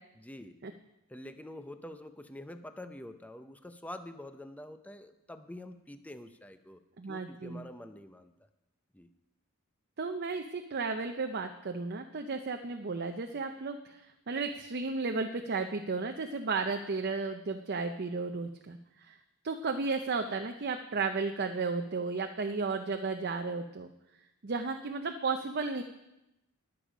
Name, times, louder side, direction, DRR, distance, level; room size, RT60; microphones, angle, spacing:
voice 1, 0.1-0.5 1.1-6.8 7.1-8.3 8.9-9.1, left 1 dB, 5° left, 9 dB, 0.6 m, -46 dB
voice 2, 7.0-7.7 10.0-19.2 19.4-23.9 24.4-25.8, right 4 dB, 50° right, 5 dB, 0.6 m, -34 dB
20.5 x 7.1 x 5.0 m, 0.92 s
head